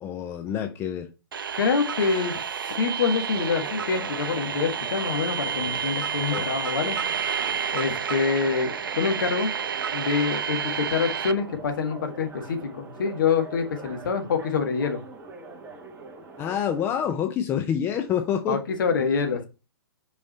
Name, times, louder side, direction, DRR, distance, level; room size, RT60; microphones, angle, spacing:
voice 1, 0.0-1.1 6.3-6.4 16.4-18.6, left 9 dB, 15° left, 0.6 m, -27 dB
sound 1, 1.3-11.3, right 7 dB, 60° right, 0.5 m, -30 dB
voice 2, 1.6-2.4 2.7-7.0 7.7-9.5 9.9-15.0 18.5-19.5, left 5 dB, 55° left, 1.6 m, -26 dB
sound 2, 3.3-17.2, right 3 dB, 15° right, 1.2 m, -43 dB
5.3 x 4.9 x 4.2 m
figure-of-eight pair, 120°, 13 cm